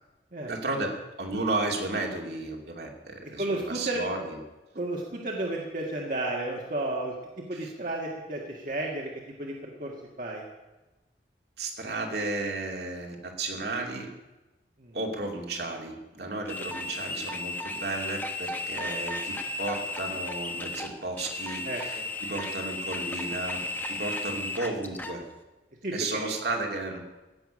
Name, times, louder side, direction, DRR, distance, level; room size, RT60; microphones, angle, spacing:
voice 1, 0.5-4.4 7.5-7.7 11.6-14.1 14.9-25.2 25.9-27.0, right 2 dB, 65° right, 1 dB, 2.7 m, -33 dB
voice 2, 3.4-4.0 4.8-7.1 7.5-9.1 9.4-9.9 10.2-10.5 14.8-14.9 21.7-22.0 25.8-26.2, right 2 dB, 50° right, -1 dB, 1.8 m, -32 dB
sound 1, 16.5-25.2, left 2 dB, 10° left, 1.0 m, -34 dB
16.0 x 7.0 x 9.9 m, 1.1 s
head